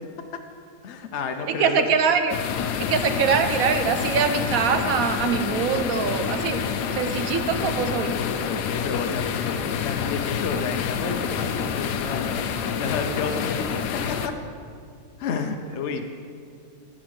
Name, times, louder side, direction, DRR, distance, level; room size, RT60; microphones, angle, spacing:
voice 1, 0.8-1.8 7.8-14.4 15.2-16.0, left 5 dB, 60° left, 5 dB, 0.8 m, -31 dB
voice 2, 1.4-2.3 2.8-8.1, right 6 dB, 65° right, 8 dB, 1.1 m, -23 dB
sound 1, 2.3-14.3, left 7 dB, 90° left, 1.2 m, -28 dB
10.0 x 7.5 x 6.3 m, 2.3 s
omnidirectional pair, 1.7 m